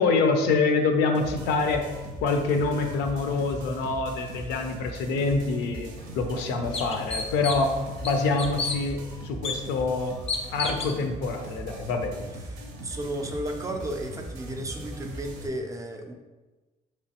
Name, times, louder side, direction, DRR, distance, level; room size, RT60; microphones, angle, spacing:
voice 1, 0.0-1.8 2.2-5.9 6.1-7.7 8.0-10.1 10.5-12.3, left 4 dB, 85° left, 5 dB, 0.5 m, -26 dB
sound 1, 1.1-15.5, right 1 dB, 90° right, 0.6 m, -40 dB
sound 2, 5.7-5.8 6.3-6.4 6.7-7.7 8.0-8.8 9.4-9.6 10.3-10.9, left 4 dB, 35° left, 0.5 m, -30 dB
voice 2, 12.4-16.1, right 1 dB, 20° right, 3 dB, 0.4 m, -34 dB
3.3 x 3.0 x 2.8 m, 1.2 s
cardioid pair, 110°, 17 cm